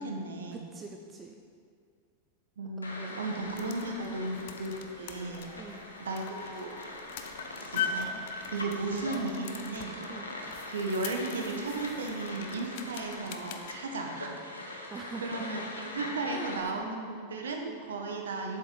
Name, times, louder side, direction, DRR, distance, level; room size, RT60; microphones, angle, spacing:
voice 1, 0.0-0.6 2.6-5.7 6.0-7.0 7.7-8.1 8.5-10.0 10.7-14.3 14.6-14.9 15.2-18.6, right 3 dB, 70° right, 2 dB, 1.1 m, -35 dB
voice 2, 0.5-1.4 2.8-3.2 4.0-4.2 5.5-5.8 10.1-10.3 14.9-15.7 16.3-16.6, right 4 dB, 20° right, 2 dB, 0.6 m, -44 dB
sound 1, 2.8-16.6, left 2 dB, 85° left, 1.0 m, -42 dB
sound 2, 3.3-13.7, left 6 dB, 55° left, 0.6 m, -42 dB
sound 3, 4.9-6.4, equal, 35° right, 2.2 m, -53 dB
7.6 x 7.6 x 4.0 m, 2.2 s
figure-of-eight pair, 90°, 0 cm